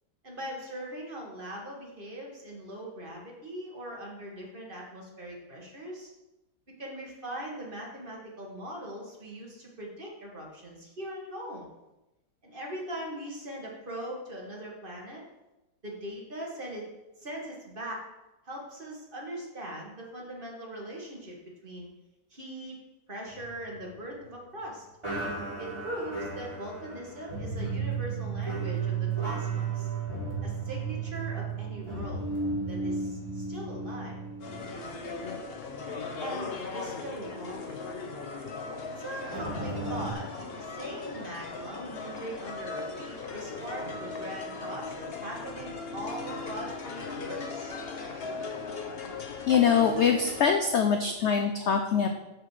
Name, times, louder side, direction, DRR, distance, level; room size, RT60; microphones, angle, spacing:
voice 1, 0.2-6.1 6.8-11.7 12.4-15.2 15.8-16.9 17.2-18.0 18.4-21.4 21.6-21.9 22.3-22.8 23.1-24.9 25.6-29.9 30.4-32.3 32.7-34.2 36.2-37.8 39.0-47.7, right 1 dB, 30° right, -2 dB, 1.7 m, -40 dB
sound 1, 23.3-24.6 25.0-35.4 35.7-35.9 36.5-36.6 39.3-40.1, right 4 dB, 15° right, 3.4 m, -34 dB
sound 2, 34.4-50.4, left 4 dB, 45° left, 0.9 m, -38 dB
voice 2, 49.5-52.1, left 7 dB, 70° left, 5 dB, 0.6 m, -23 dB
7.5 x 6.0 x 4.8 m, 0.99 s
omnidirectional pair, 1.8 m